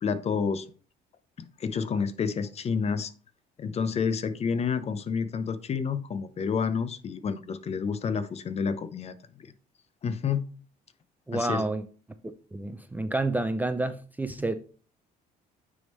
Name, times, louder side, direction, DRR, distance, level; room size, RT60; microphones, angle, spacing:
voice 1, 0.0-0.7 1.4-3.1 3.6-9.5 10.0-10.4 11.3-11.7, left 6 dB, 40° left, 0.6 m, -29 dB
voice 2, 11.3-11.8 12.5-14.6, right 2 dB, 10° right, 0.4 m, -29 dB
9.5 x 3.5 x 3.1 m
cardioid pair, 110°, 17 cm